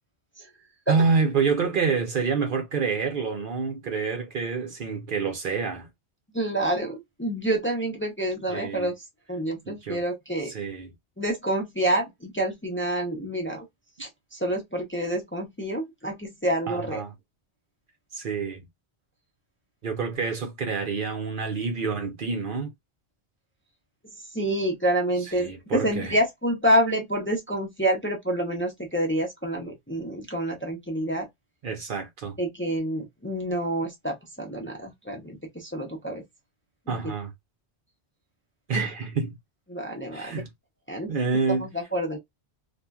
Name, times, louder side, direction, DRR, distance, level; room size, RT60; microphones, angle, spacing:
voice 1, 0.9-5.9 8.5-8.9 9.7-10.0 10.5-10.9 16.7-17.1 18.1-18.6 19.8-22.7 25.2-26.2 31.6-32.4 36.9-37.3 38.7-39.4 40.1-40.5 41.1-41.7, right 5 dB, 55° right, 0.7 m, -27 dB
voice 2, 6.3-8.9 9.3-10.5 11.2-13.7 14.0-17.0 24.3-31.3 32.4-36.2 36.9-37.0 38.7-38.8 39.7-40.4 40.9-41.1 41.5-42.2, right 1 dB, 15° left, 0.6 m, -28 dB
2.8 x 2.5 x 2.3 m
omnidirectional pair, 1.1 m